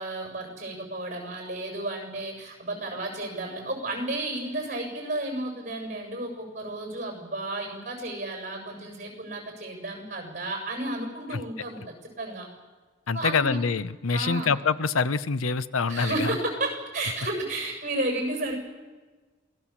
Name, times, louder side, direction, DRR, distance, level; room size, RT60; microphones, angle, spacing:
voice 1, 0.0-11.8 12.2-12.5 13.1-13.6 14.1-14.5 15.9-18.6, right 2 dB, 35° right, 2 dB, 7.0 m, -32 dB
voice 2, 13.1-16.4, left 5 dB, 90° left, 15 dB, 0.7 m, -25 dB
27.0 x 18.5 x 7.3 m, 1.3 s
head